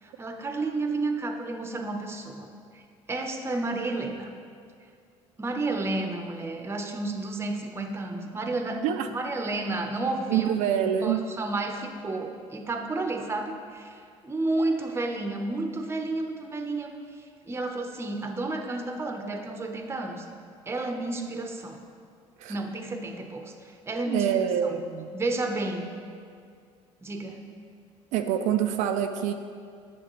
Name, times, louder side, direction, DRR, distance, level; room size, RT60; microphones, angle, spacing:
voice 1, 0.0-2.5 2.7-2.8 3.1-4.3 5.4-8.8 9.1-10.5 11.0-20.3 20.7-21.8 22.5-24.7 25.1-25.9 27.0-27.4, right 2 dB, 20° right, 4 dB, 0.8 m, -31 dB
voice 2, 10.3-11.3 22.4-22.6 24.1-25.1 28.1-29.3, right 9 dB, 80° right, 6 dB, 0.4 m, -26 dB
9.1 x 6.9 x 3.1 m, 2.3 s
cardioid pair, 100°, 12 cm